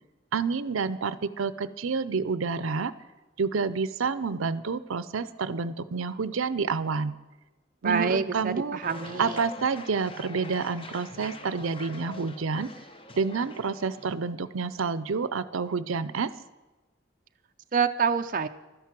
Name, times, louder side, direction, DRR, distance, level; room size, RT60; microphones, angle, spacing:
voice 1, 0.3-2.9 3.4-7.1 7.8-8.8 9.2-12.7 13.1-16.3, right 5 dB, 85° right, 15 dB, 0.6 m, -29 dB
voice 2, 7.8-9.4 17.7-18.5, right 5 dB, 40° right, 7 dB, 0.4 m, -26 dB
sound 1, 8.8-14.1, left 2 dB, 25° left, 0.7 m, -44 dB
12.5 x 10.5 x 7.5 m, 1.1 s
head